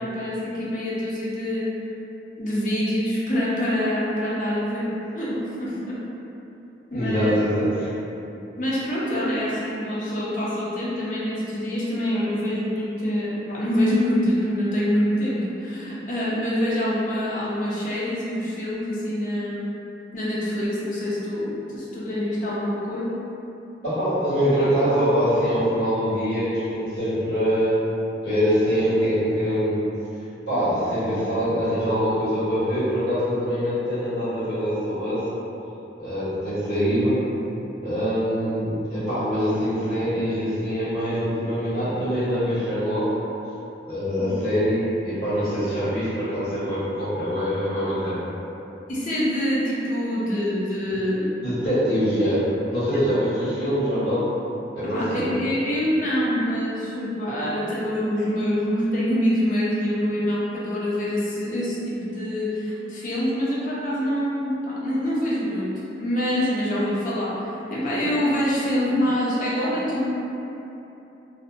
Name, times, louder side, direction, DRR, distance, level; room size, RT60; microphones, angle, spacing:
voice 1, 0.0-1.7 2.4-4.9 5.1-6.0 6.9-7.4 8.6-19.7 20.1-23.2 44.2-44.3 48.9-51.3 52.9-53.1 54.8-65.7 66.0-70.1, equal, 45° left, -7 dB, 0.5 m, -25 dB
voice 2, 6.9-7.9 23.8-27.8 28.2-29.9 30.5-35.2 36.0-37.2 37.8-43.1 43.9-48.2 50.9-51.0 51.4-54.2 54.7-55.3, equal, 70° left, -14 dB, 1.5 m, -24 dB
2.6 x 2.1 x 2.5 m, 2.9 s
head